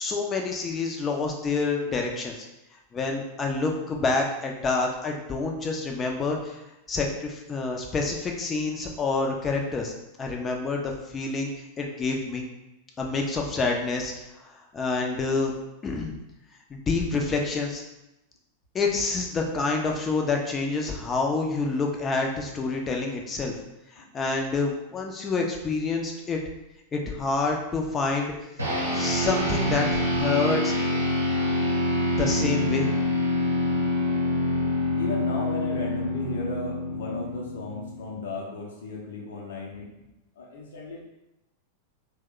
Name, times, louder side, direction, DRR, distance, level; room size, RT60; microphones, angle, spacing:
voice 1, 0.0-2.5 2.9-6.6 6.9-9.9 10.2-11.5 11.8-12.5 13.0-15.5 15.8-16.1 16.7-17.8 18.7-23.5 23.9-26.4 26.9-28.3 28.9-30.7 32.2-32.9, left 3 dB, 20° left, 1 dB, 0.6 m, -27 dB
sound 1, 28.6-38.2, left 1 dB, 80° right, 0.7 m, -26 dB
voice 2, 35.0-39.9 40.4-41.0, left 2 dB, 60° left, -2 dB, 0.7 m, -35 dB
2.8 x 2.2 x 3.7 m, 0.94 s
figure-of-eight pair, 90°, 0 cm